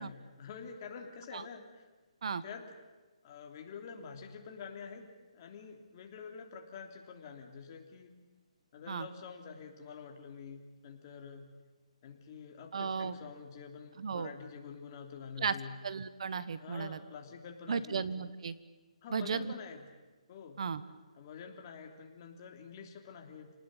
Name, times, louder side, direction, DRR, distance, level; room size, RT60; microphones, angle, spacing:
voice 1, 0.0-1.9 2.4-2.7 3.2-5.0 5.3-8.1 8.7-11.5 12.0-15.8 16.6-18.0 19.0-19.8 20.3-20.6 21.1-23.5, left 6 dB, 35° left, 3 dB, 3.2 m, -47 dB
voice 2, 12.7-13.1 14.0-14.3 15.4-15.6 15.8-17.0 17.7-18.5 19.1-19.5 20.6-20.8, right 6 dB, 60° right, 15 dB, 1.3 m, -35 dB
29.0 x 19.0 x 9.1 m, 1.3 s
hypercardioid pair, 165°, 4 cm